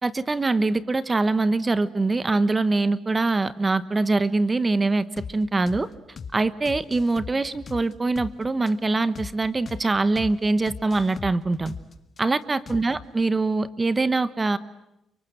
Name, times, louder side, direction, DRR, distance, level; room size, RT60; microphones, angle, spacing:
voice 1, 0.0-5.9 6.3-11.7 12.2-14.6, right 3 dB, 25° right, 14 dB, 1.1 m, -23 dB
sound 1, 5.2-5.3 5.7-5.8 6.2-6.3 6.6-8.3 8.7-8.8 9.1-9.3 9.6-9.8 10.1-10.3 10.7-12.2 12.7-13.1, left 6 dB, 40° left, 1.7 m, -38 dB
30.0 x 25.0 x 8.0 m, 0.86 s
cardioid pair, 90°, 0 cm